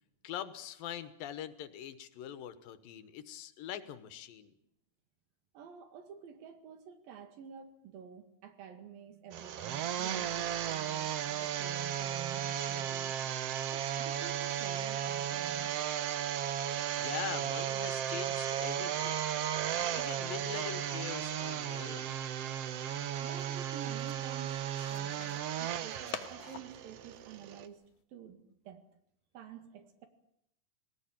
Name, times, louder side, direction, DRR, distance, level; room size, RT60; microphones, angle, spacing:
voice 1, 0.2-4.5 16.5-19.3 19.9-22.2, left 10 dB, 90° left, 12 dB, 3.0 m, -43 dB
voice 2, 5.5-13.1 13.7-15.7 23.2-27.8 28.1-28.4 28.7-28.8 29.3-30.1, right 8 dB, 85° right, 8 dB, 3.8 m, -50 dB
sound 1, 9.3-27.7, right 10 dB, 70° right, 1.5 m, -35 dB
sound 2, 22.5-28.0, left 9 dB, 65° left, 2.2 m, -50 dB
20.0 x 19.0 x 9.0 m, 0.77 s
omnidirectional pair, 4.0 m